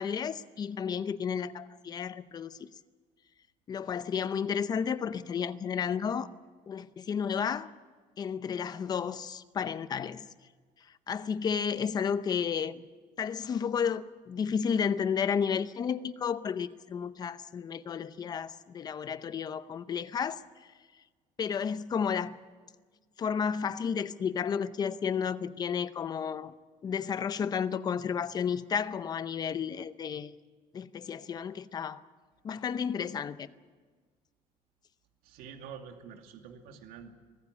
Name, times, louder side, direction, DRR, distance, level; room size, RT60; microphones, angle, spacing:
voice 1, 0.0-2.7 3.7-6.3 6.7-7.7 8.2-10.3 11.1-12.8 13.2-20.4 21.4-22.4 23.2-26.5 26.8-30.3 30.7-32.0 32.4-33.5, left 7 dB, 25° left, 14 dB, 0.7 m, -32 dB
voice 2, 35.2-37.1, right 7 dB, 85° right, 4 dB, 2.5 m, -47 dB
23.5 x 15.0 x 9.7 m, 1.5 s
cardioid pair, 175°, 15 cm